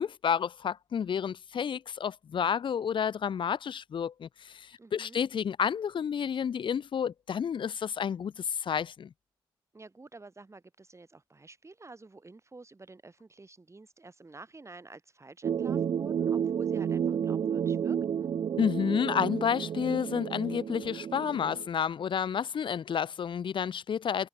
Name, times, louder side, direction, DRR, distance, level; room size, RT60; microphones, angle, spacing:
voice 1, 0.0-9.1 18.6-24.3, left 7 dB, 65° left, 0.8 m, -30 dB
voice 2, 4.8-5.2 9.7-18.3, right 3 dB, 30° right, 4.2 m, -50 dB
sound 1, 15.4-21.7, right 8 dB, 65° right, 0.6 m, -31 dB
cardioid pair, 55°, 9 cm